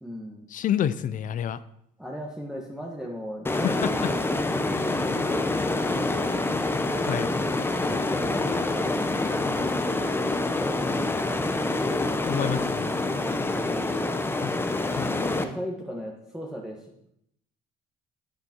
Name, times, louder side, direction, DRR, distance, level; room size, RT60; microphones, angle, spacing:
voice 1, 0.0-0.5 2.0-3.8 4.5-6.3 7.5-11.2 13.7-14.1 14.9-16.9, equal, 5° right, -1 dB, 1.5 m, -38 dB
voice 2, 0.5-1.6 3.6-4.1 7.1-7.3 12.2-13.0 15.0-15.1, left 10 dB, 50° left, 15 dB, 0.6 m, -28 dB
sound 1, 3.5-15.4, left 2 dB, 15° left, 0.9 m, -26 dB
11.0 x 9.0 x 4.5 m, 0.74 s
cardioid pair, 110°, 17 cm